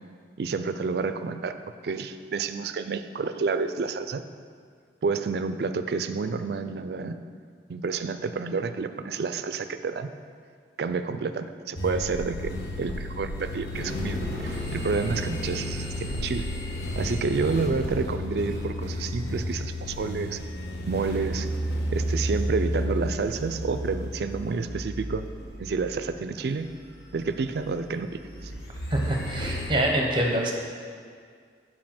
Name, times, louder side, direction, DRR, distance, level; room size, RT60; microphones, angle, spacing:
voice 1, 0.4-1.6 1.8-4.2 5.0-7.2 7.7-10.1 10.8-12.5 12.8-16.4 17.0-20.4 20.8-21.5 21.9-25.3 25.6-26.7 27.1-28.1 28.4-28.5, right 4 dB, 60° right, 10 dB, 0.4 m, -29 dB
sound 1, 11.8-29.7, equal, 60° left, 1.2 m, -32 dB
voice 2, 28.9-30.5, right 1 dB, 25° right, 1 dB, 0.9 m, -25 dB
7.5 x 4.6 x 5.9 m, 2.1 s
head